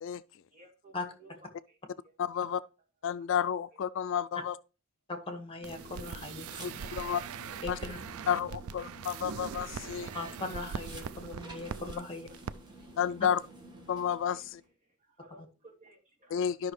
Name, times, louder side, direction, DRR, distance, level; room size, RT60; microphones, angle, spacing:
voice 1, 0.5-1.3 1.7-1.8 2.0-2.1 6.8-7.1 7.5-7.6 11.4-11.8 14.3-14.5 14.8-16.3, right 3 dB, 35° right, 2.5 m, -56 dB
voice 2, 2.2-2.6 3.0-4.5 6.6-7.2 7.7-7.8 8.3-10.1 13.0-13.4 13.9-14.6 16.3-16.7, left 8 dB, 60° left, 0.3 m, -31 dB
voice 3, 5.1-6.8 7.6-8.0 10.1-12.3, left 3 dB, 25° left, 1.5 m, -39 dB
sound 1, 5.6-14.7, right 1 dB, 20° right, 1.5 m, -51 dB
sound 2, 5.6-11.9 12.3-12.5 12.8-12.9, right 6 dB, 85° right, 0.4 m, -41 dB
12.0 x 5.7 x 3.2 m
head